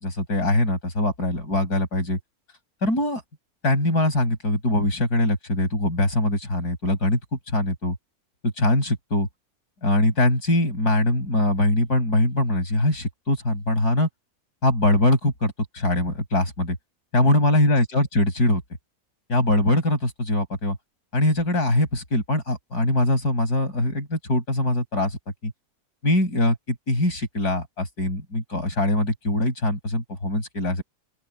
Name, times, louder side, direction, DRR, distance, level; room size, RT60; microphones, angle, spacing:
voice 1, 0.0-2.2 2.8-3.2 3.6-8.0 8.4-9.3 9.8-14.1 14.6-16.8 17.1-18.6 19.3-20.8 21.1-25.5 26.0-30.8, left 1 dB, 85° left, 7.4 m, -22 dB
open air
omnidirectional pair, 1.6 m